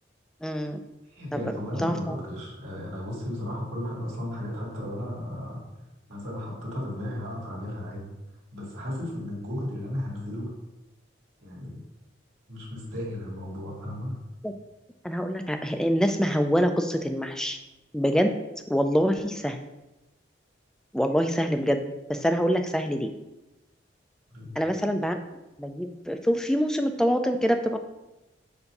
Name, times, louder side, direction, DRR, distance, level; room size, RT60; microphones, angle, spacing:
voice 1, 0.4-0.8 1.8-2.2 14.4-14.5 15.0-17.6 17.9-18.3 18.7-19.6 20.9-21.8 22.1-23.1 24.6-25.2 25.6-27.8, equal, 5° left, 6 dB, 0.3 m, -25 dB
voice 2, 1.1-5.6 6.1-8.1 8.5-10.5 11.4-11.8 12.5-14.2 24.3-24.5, left 1 dB, 90° right, -5 dB, 2.2 m, -34 dB
6.9 x 2.7 x 5.3 m, 0.98 s
head